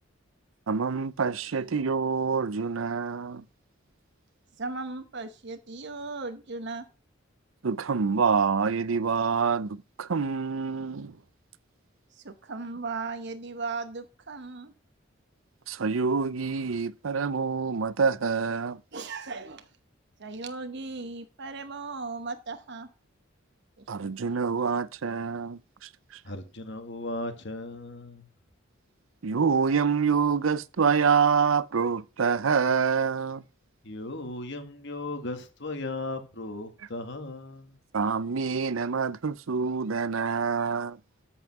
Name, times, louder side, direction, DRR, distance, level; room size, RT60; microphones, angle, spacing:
voice 1, 0.7-3.4 7.6-11.1 15.7-18.8 23.9-25.9 29.2-33.4 37.9-41.0, right 5 dB, 80° right, 0.6 m, -26 dB
voice 2, 4.6-6.9 12.1-14.7 18.9-19.7 20.2-22.9 24.0-24.1, right 3 dB, 60° right, 1.0 m, -37 dB
voice 3, 26.2-28.2 33.8-37.8, left 2 dB, 60° left, 1.9 m, -36 dB
13.5 x 5.6 x 6.0 m
head